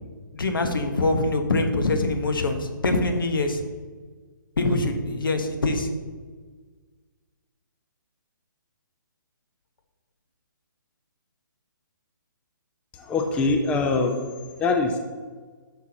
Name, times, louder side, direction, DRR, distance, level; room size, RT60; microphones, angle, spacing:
voice 1, 0.3-3.6 4.6-5.9, left 2 dB, 80° left, 5 dB, 1.2 m, -24 dB
voice 2, 13.0-14.3 14.6-15.0, left 3 dB, 10° left, 4 dB, 0.4 m, -23 dB
9.6 x 6.1 x 2.9 m, 1.5 s
hypercardioid pair, 150°, 11 cm